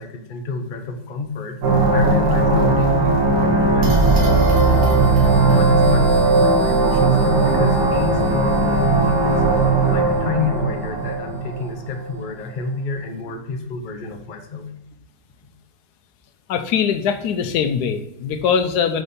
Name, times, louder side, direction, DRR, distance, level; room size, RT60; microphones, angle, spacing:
voice 1, 0.0-1.6 1.9-4.1 4.6-9.4 9.9-14.7 15.4-15.5, left 5 dB, 55° left, 4 dB, 0.5 m, -28 dB
sound 1, 1.6-12.2, right 3 dB, 65° right, 1.6 m, -17 dB
voice 2, 16.5-19.0, left 7 dB, 75° left, 8 dB, 1.1 m, -21 dB
4.5 x 4.1 x 5.1 m, 0.87 s
omnidirectional pair, 1.8 m